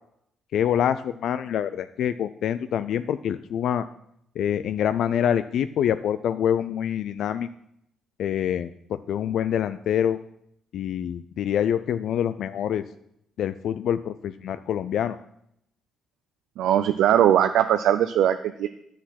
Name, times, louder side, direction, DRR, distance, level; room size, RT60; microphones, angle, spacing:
voice 1, 0.5-3.9 4.4-7.5 8.2-10.2 10.7-12.8 13.4-15.2, left 9 dB, 75° left, 12 dB, 0.3 m, -26 dB
voice 2, 16.6-18.7, right 10 dB, 85° right, 9 dB, 0.4 m, -20 dB
10.0 x 6.2 x 5.8 m, 0.75 s
cardioid pair, 90°, 0 cm